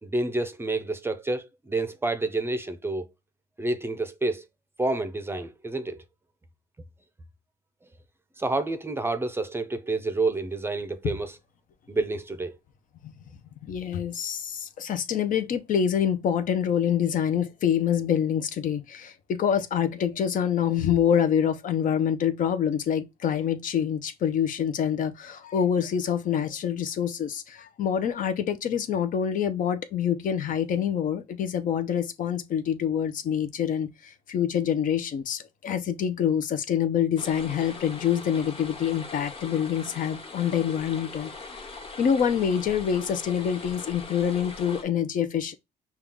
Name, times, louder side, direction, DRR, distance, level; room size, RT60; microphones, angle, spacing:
voice 1, 0.0-3.1 3.6-4.4 4.8-6.0 8.4-11.4 11.9-12.6, right 2 dB, 15° right, 0.6 m, -29 dB
voice 2, 13.6-33.9 34.3-41.3 42.0-45.5, left 8 dB, 55° left, 0.7 m, -26 dB
sound 1, 37.2-44.8, left 3 dB, 30° left, 1.4 m, -41 dB
5.6 x 2.4 x 3.6 m
cardioid pair, 110°, 17 cm